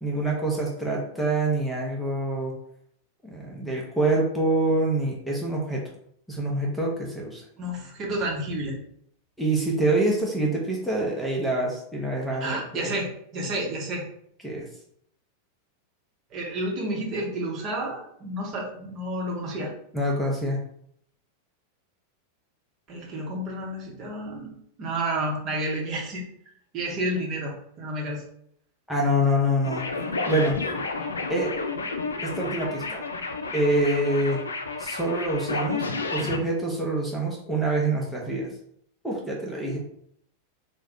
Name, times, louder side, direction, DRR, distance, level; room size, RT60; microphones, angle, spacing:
voice 1, 0.0-2.5 3.2-5.8 6.3-7.4 9.4-12.9 14.4-14.7 19.9-20.6 28.9-29.8 30.3-30.6 31.3-31.5 32.2-33.0 33.5-34.4 34.8-38.5 39.0-39.8, right 1 dB, 5° left, -2 dB, 0.8 m, -26 dB
voice 2, 7.6-8.8 12.4-14.0 16.3-19.7 22.9-26.2 26.7-28.2 39.7-39.8, right 1 dB, 35° right, -1 dB, 0.9 m, -30 dB
sound 1, 29.6-36.4, left 3 dB, 70° left, 0.4 m, -31 dB
3.4 x 2.2 x 3.4 m, 0.68 s
figure-of-eight pair, 90°, 0 cm